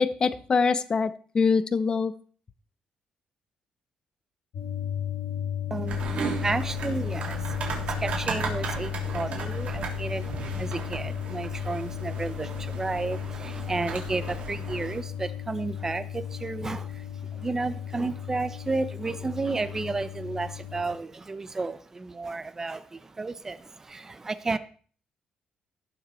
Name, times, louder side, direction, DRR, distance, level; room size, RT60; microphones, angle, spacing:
voice 1, 0.0-2.1, left 5 dB, 30° left, 14 dB, 0.8 m, -24 dB
sound 1, 4.5-20.8, left 10 dB, 70° left, 2.1 m, -34 dB
voice 2, 5.7-24.6, right 3 dB, 20° right, 12 dB, 0.8 m, -32 dB
sound 2, 5.9-15.0, right 5 dB, 50° right, 3.4 m, -36 dB
17.5 x 6.6 x 4.4 m, 0.44 s
cardioid pair, 150°, 3 cm